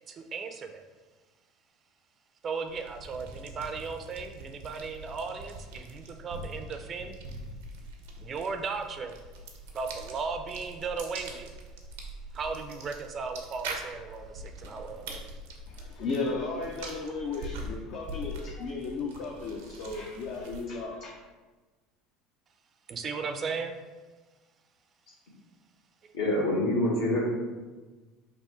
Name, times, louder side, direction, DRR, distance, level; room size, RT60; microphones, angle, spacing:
voice 1, 0.1-0.8 2.4-7.2 8.2-9.2 9.7-11.5 12.3-15.2 22.9-23.7, right 5 dB, 40° right, 6 dB, 0.4 m, -36 dB
sound 1, 2.7-20.9, right 1 dB, 85° right, 0.6 m, -43 dB
voice 2, 15.7-21.2, left 3 dB, 60° left, -1 dB, 0.5 m, -35 dB
voice 3, 26.1-27.2, left 1 dB, 75° left, -5 dB, 1.4 m, -26 dB
3.5 x 2.4 x 4.4 m, 1.3 s
supercardioid pair, 95°, 0 cm